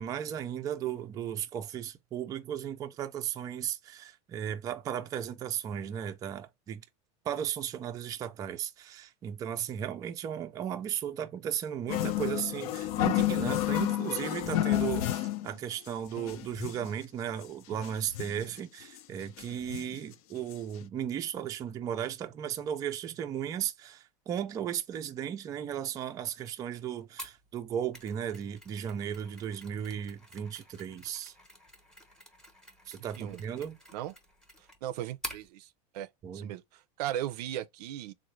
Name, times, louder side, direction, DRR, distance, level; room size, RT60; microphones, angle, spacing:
voice 1, 0.0-6.8 7.3-31.3 32.9-33.8 36.2-36.5, right 9 dB, 20° right, 0.3 m, -35 dB
sound 1, 11.9-15.5 15.9-16.0 16.2-16.9 17.4-17.5 17.7-18.5 19.0-19.1 19.4-20.0 20.5-20.6 20.8-20.9, left 13 dB, 65° left, 0.5 m, -30 dB
Mechanisms, 27.2-35.5, right 1 dB, 5° left, 0.7 m, -48 dB
voice 2, 34.8-38.1, right 12 dB, 85° right, 0.5 m, -37 dB
3.7 x 2.1 x 3.0 m
supercardioid pair, 165°, 20 cm